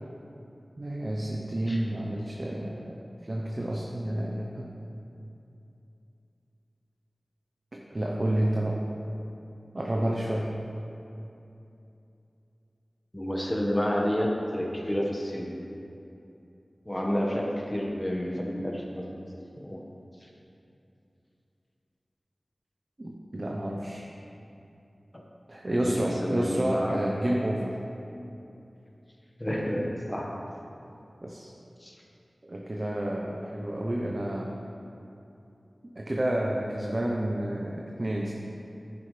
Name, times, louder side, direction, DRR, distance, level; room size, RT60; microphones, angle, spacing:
voice 1, 0.8-2.9 3.2-4.7 7.7-8.8 9.7-10.6 23.0-24.1 25.5-27.8 31.2-31.5 32.4-34.6 35.9-38.3, right 1 dB, 40° right, -2 dB, 0.9 m, -30 dB
voice 2, 13.1-15.6 16.8-19.1 19.5-19.9 20.2-20.3 25.1-25.2 25.7-27.0 29.4-30.4 31.8-31.9, equal, 20° left, -1 dB, 1.5 m, -30 dB
10.5 x 10.5 x 3.4 m, 2.7 s
wide cardioid pair, 55°, 0 cm